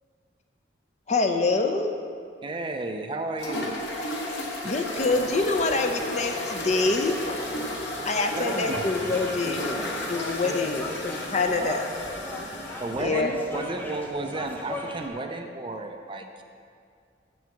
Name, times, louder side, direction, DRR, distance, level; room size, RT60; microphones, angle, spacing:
voice 1, 1.1-1.9 4.6-7.2 8.0-9.8 10.1-11.8 13.0-13.4, left 3 dB, 40° left, 5 dB, 0.6 m, -26 dB
voice 2, 2.4-3.8 8.4-8.9 10.4-10.8 11.5-11.9 12.8-16.4, right 2 dB, 25° right, 5 dB, 0.5 m, -33 dB
sound 1, 3.4-13.0, left 1 dB, 80° left, 1.4 m, -33 dB
sound 2, 4.9-15.1, left 1 dB, 10° left, 0.8 m, -39 dB
7.8 x 6.3 x 7.1 m, 2.3 s
head